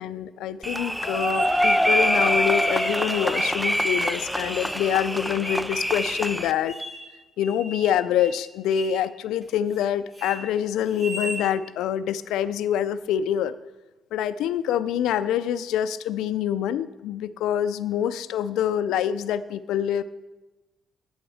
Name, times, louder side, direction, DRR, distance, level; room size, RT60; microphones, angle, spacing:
voice 1, 0.0-6.8 7.4-13.5 14.1-20.0, left 9 dB, 90° left, 13 dB, 0.4 m, -26 dB
sound 1, 0.6-6.5, equal, ahead, 0.3 m, -24 dB
sound 2, 1.1-2.0 2.6-3.5 3.9-4.7 5.2-5.6 6.1-6.2 6.6-7.1 7.4-8.4 8.7-9.0 9.4-9.8 10.1-10.4 10.9-11.4, right 1 dB, 20° right, 3.0 m, -36 dB
8.8 x 7.9 x 6.3 m, 1.1 s
cardioid pair, 90°, 0 cm